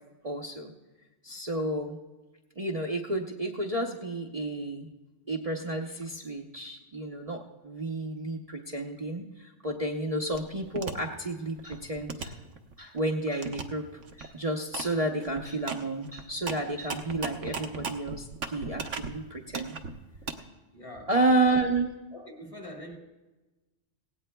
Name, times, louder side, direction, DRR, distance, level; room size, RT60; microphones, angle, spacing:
voice 1, 0.2-0.7 1.2-2.0 2.6-4.9 5.3-12.4 12.8-19.8 21.1-21.9, right 2 dB, 35° right, -2 dB, 0.8 m, -31 dB
sound 1, 10.3-10.9 11.4-13.0 13.4-13.6 14.0-14.3 14.7-14.9 15.2-19.1 19.5-20.3, right 5 dB, 75° right, 1.2 m, -37 dB
voice 2, 20.7-21.4 22.1-23.0, equal, 25° left, 1 dB, 1.5 m, -44 dB
18.0 x 17.0 x 2.2 m, 1.1 s
omnidirectional pair, 1.3 m